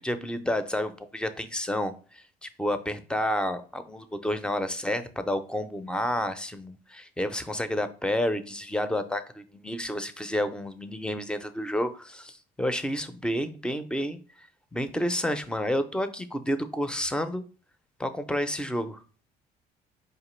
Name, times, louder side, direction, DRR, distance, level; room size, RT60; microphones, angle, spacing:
voice 1, 0.0-1.9 2.4-17.4 18.0-19.0, equal, 5° left, 0.4 m, -30 dB
4.4 x 2.9 x 3.1 m
cardioid pair, 110°, 17 cm